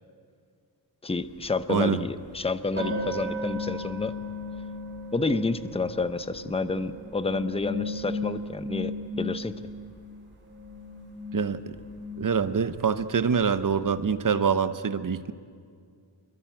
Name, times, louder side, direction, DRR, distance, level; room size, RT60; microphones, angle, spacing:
voice 1, 1.0-4.2 5.1-9.5, left 3 dB, 15° left, 12 dB, 0.7 m, -29 dB
sound 1, 1.2-1.3 2.8-10.2 10.4-14.2, left 1 dB, 25° right, 7.6 m, -36 dB
voice 2, 1.7-2.0 11.3-11.6 12.2-15.3, right 6 dB, 45° right, 13 dB, 0.9 m, -25 dB
26.0 x 22.5 x 9.0 m, 2.2 s
wide cardioid pair, 180°, 45 cm